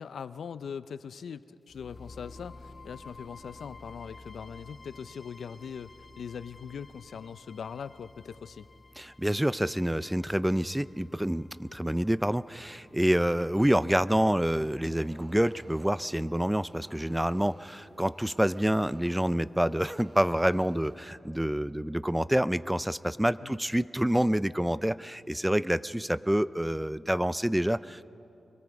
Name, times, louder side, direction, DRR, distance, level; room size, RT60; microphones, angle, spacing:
voice 1, 0.0-8.7 23.4-23.5, left 7 dB, 90° left, 14 dB, 0.5 m, -41 dB
sound 1, 1.7-15.7, left 3 dB, 30° left, 1.4 m, -52 dB
voice 2, 9.0-28.1, right 1 dB, 5° right, 17 dB, 0.4 m, -27 dB
sound 2, 14.9-21.0, right 1 dB, 30° right, 2.3 m, -55 dB
25.0 x 23.0 x 4.8 m, 2.8 s
wide cardioid pair, 85°, 0 cm